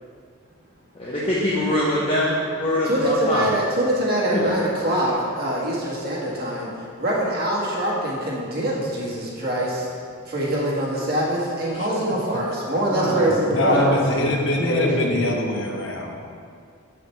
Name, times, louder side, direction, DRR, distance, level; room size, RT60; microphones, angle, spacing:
voice 1, 0.9-3.5 4.3-4.6 12.9-14.3 14.6-15.2, left 1 dB, 25° left, -7 dB, 1.0 m, -24 dB
voice 2, 2.9-6.7 7.0-9.9 10.3-13.9, right 1 dB, 50° right, -5 dB, 1.8 m, -24 dB
voice 3, 13.5-16.2, left 2 dB, 65° left, 1 dB, 1.0 m, -24 dB
8.0 x 7.8 x 3.4 m, 2.3 s
head